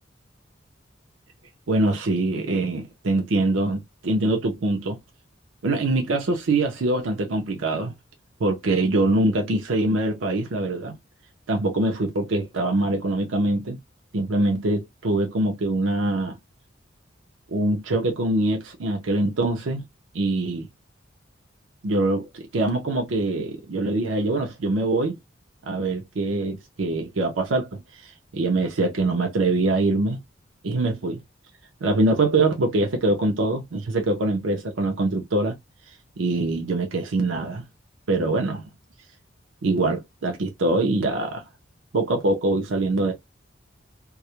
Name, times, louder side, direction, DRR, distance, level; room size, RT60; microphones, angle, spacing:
voice 1, 1.7-5.0 5.6-7.9 8.4-11.0 11.5-13.8 14.1-16.3 17.5-19.8 20.1-20.7 21.8-25.2 25.6-30.2 30.6-31.2 31.8-35.5 36.2-37.6 38.1-38.6 39.6-41.4 41.9-43.1, right 2 dB, 85° right, 0.5 m, -23 dB
2.3 x 2.0 x 2.8 m
head